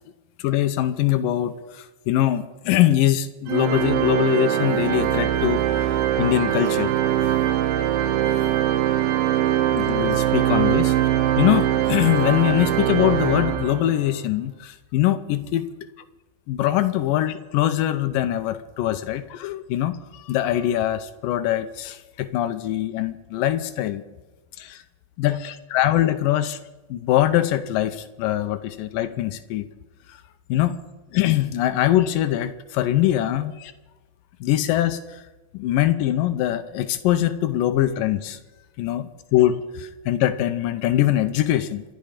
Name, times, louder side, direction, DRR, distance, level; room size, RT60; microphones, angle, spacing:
voice 1, 0.4-5.9 6.2-6.9 7.2-7.3 9.7-11.1 11.4-15.7 16.5-24.0 24.6-24.8 25.2-26.6 26.9-29.7 30.5-30.8 31.1-33.7 34.4-35.2 35.5-38.4 38.8-41.8, left 13 dB, 80° left, 10 dB, 2.1 m, -23 dB
Organ, 3.5-14.1, right 11 dB, 75° right, 2.7 m, -22 dB
26.5 x 10.5 x 5.1 m, 1.1 s
omnidirectional pair, 4.6 m